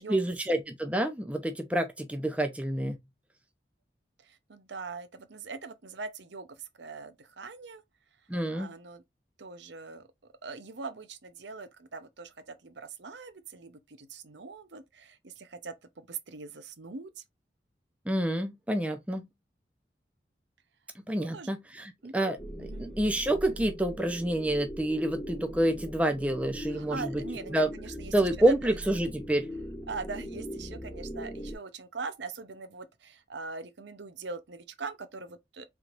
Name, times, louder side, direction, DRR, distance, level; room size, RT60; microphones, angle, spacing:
voice 1, 0.0-3.0 8.3-8.7 18.1-19.3 21.1-27.2 27.5-27.7 28.1-29.5, right 1 dB, 10° right, 0.6 m, -28 dB
voice 2, 4.2-7.8 8.5-9.0 9.4-10.1 10.4-17.2 21.1-21.5 22.0-22.3 22.6-22.9 26.7-28.8 29.9-35.7, right 4 dB, 80° right, 0.8 m, -42 dB
sound 1, 22.4-31.6, equal, 15° left, 1.4 m, -40 dB
4.5 x 3.6 x 2.5 m
head